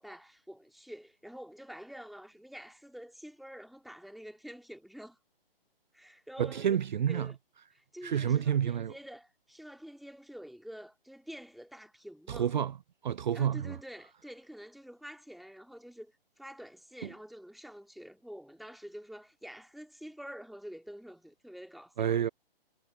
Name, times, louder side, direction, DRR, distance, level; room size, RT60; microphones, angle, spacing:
voice 1, 0.0-5.2 5.9-6.7 7.1-7.4 7.7-12.5 13.3-16.1 16.4-22.2, equal, ahead, 2.3 m, -48 dB
voice 2, 6.4-7.3 8.0-8.9 12.3-12.8 13.0-13.7 22.0-22.3, right 9 dB, 50° right, 0.7 m, -29 dB
figure-of-eight pair, 135°, 30 cm